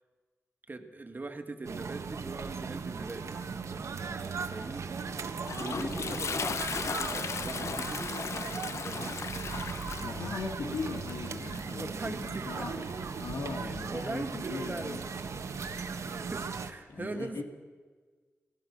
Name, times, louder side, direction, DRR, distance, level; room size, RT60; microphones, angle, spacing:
voice 1, 0.7-3.4 4.5-4.9 5.2-8.3 8.8-9.3 10.6-10.9 11.8-12.9 13.6-15.4 15.7-17.4, right 3 dB, 40° right, 5 dB, 2.0 m, -41 dB
sound 1, 1.6-16.7, right 5 dB, 75° right, 1.4 m, -38 dB
Toilet flush, 4.9-13.3, left 5 dB, 70° left, 1.0 m, -37 dB
voice 2, 5.7-6.0 10.0-12.8 13.2-15.1 15.7-16.2 16.9-17.4, left 4 dB, 90° left, 3 dB, 2.7 m, -39 dB
25.5 x 17.5 x 6.3 m, 1.5 s
cardioid pair, 75°, 5 cm